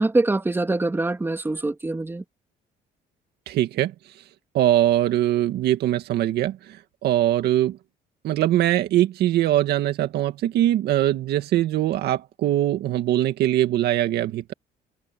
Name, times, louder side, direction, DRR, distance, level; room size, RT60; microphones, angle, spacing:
voice 1, 0.0-2.2, right 2 dB, 15° right, 2.8 m, -24 dB
voice 2, 3.5-3.9 4.5-6.8 7.0-7.8 8.2-14.5, right 13 dB, 75° right, 2.0 m, -22 dB
cardioid pair, 110°, 17 cm